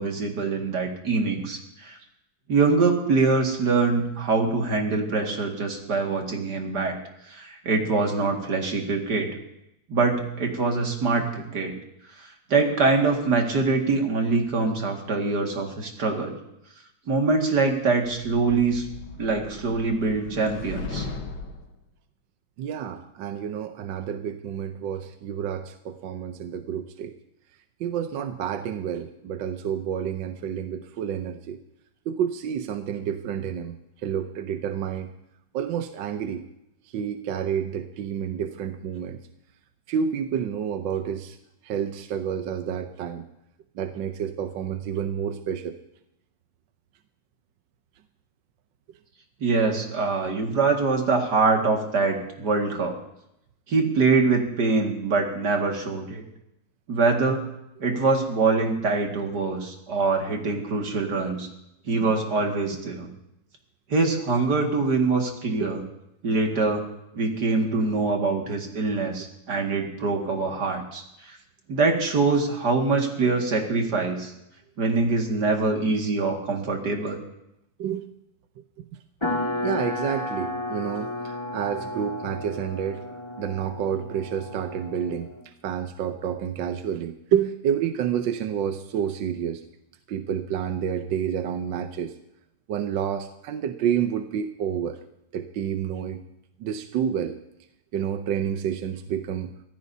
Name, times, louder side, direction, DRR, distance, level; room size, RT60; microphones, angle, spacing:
voice 1, 0.0-2.0 2.5-7.0 7.3-9.3 9.9-11.7 12.2-16.4 17.1-18.9 19.2-21.1 49.4-53.0 53.7-56.2 56.9-57.5 57.8-61.5 61.9-63.1 63.9-65.8 66.2-66.8 67.1-71.4 71.7-74.3 74.8-77.2, right 3 dB, 55° right, 2 dB, 2.5 m, -24 dB
sound 1, 18.1-21.7, left 4 dB, 60° left, 1.9 m, -38 dB
voice 2, 22.6-27.1 27.8-31.6 32.1-35.1 35.5-36.4 36.9-39.2 39.9-41.4 41.6-43.3 43.7-45.8 62.0-62.1 65.6-65.7 77.8-78.1 78.8-79.0 79.6-83.0 83.4-85.3 85.6-89.6 90.1-92.1 92.7-95.0 95.3-96.2 96.6-97.4 97.9-99.5, right 8 dB, 70° right, 7 dB, 1.4 m, -29 dB
sound 2, 79.2-85.4, left 1 dB, 15° left, 1.6 m, -32 dB
24.5 x 15.5 x 2.8 m, 0.83 s
omnidirectional pair, 2.3 m